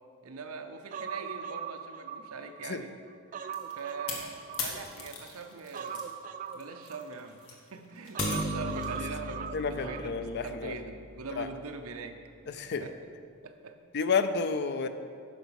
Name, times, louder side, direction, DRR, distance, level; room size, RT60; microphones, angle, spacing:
voice 1, 0.2-3.0 3.8-6.1 6.5-12.2 12.7-13.0 13.4-13.8, right 4 dB, 85° right, 7 dB, 0.7 m, -42 dB
Human voice, 0.9-2.7 3.1-5.1 5.7-7.5 8.1-10.1 10.4-10.5, right 7 dB, 40° right, 0.3 m, -40 dB
sound 1, 3.5-6.1 6.5-9.0, left 4 dB, 85° left, 1.5 m, -39 dB
Bass guitar, 8.2-11.3, equal, 15° left, 0.8 m, -38 dB
voice 2, 9.5-10.7 11.4-11.5 12.5-12.8 13.9-14.9, left 5 dB, 50° left, 10 dB, 0.5 m, -30 dB
9.5 x 5.7 x 5.9 m, 2.3 s
head